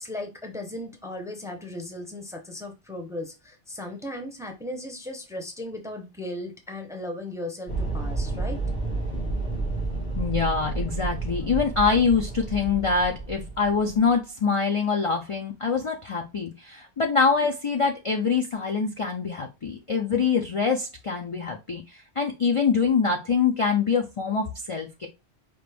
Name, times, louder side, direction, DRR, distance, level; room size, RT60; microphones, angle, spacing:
voice 1, 0.0-8.6, left 1 dB, 5° right, 0.6 m, -36 dB
sound 1, 7.7-14.1, right 3 dB, 85° left, 2.8 m, -30 dB
voice 2, 10.2-25.1, left 5 dB, 40° left, 0.5 m, -24 dB
5.0 x 2.5 x 3.3 m
omnidirectional pair, 1.1 m